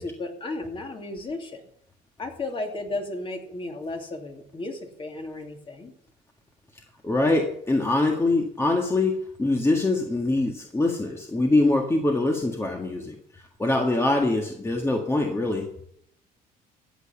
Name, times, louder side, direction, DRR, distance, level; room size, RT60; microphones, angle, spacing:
voice 1, 0.0-1.6 2.2-5.9, left 2 dB, 30° left, 3 dB, 2.8 m, -34 dB
voice 2, 7.0-13.2 13.6-15.7, left 2 dB, 15° left, 2 dB, 1.7 m, -23 dB
14.0 x 8.5 x 7.2 m, 0.69 s
cardioid pair, 110°, 17 cm